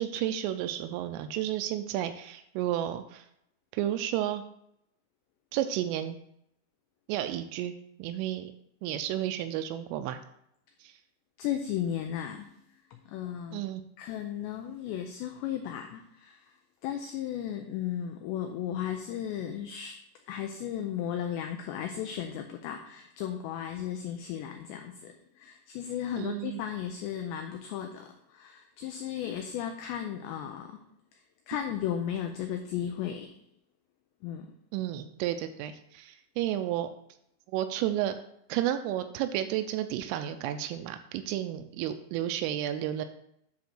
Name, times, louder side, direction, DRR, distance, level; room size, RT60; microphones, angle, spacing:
voice 1, 0.0-3.3 3.7-4.4 5.5-6.2 7.1-7.7 8.0-8.5 8.8-10.2 10.8-10.9 13.5-13.8 26.2-26.6 34.7-36.9 37.5-38.2 38.5-43.1, right 12 dB, 85° right, 8 dB, 3.1 m, -32 dB
voice 2, 11.4-12.5 12.9-13.6 14.0-16.5 16.8-20.0 20.3-30.8 31.1-33.4 34.2-34.5, left 10 dB, 90° left, 5 dB, 2.5 m, -35 dB
9.6 x 3.6 x 6.0 m, 0.75 s
omnidirectional pair, 5.8 m